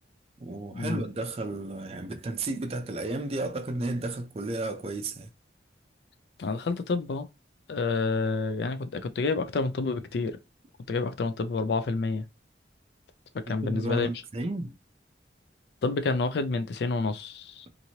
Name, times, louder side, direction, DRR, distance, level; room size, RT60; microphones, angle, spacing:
voice 1, 0.4-5.3 13.6-14.7, right 2 dB, 35° right, 0.4 m, -32 dB
voice 2, 6.4-7.3 7.7-10.4 10.9-12.2 13.3-14.1 15.8-17.7, left 3 dB, 70° left, 0.4 m, -29 dB
2.9 x 2.5 x 2.8 m
head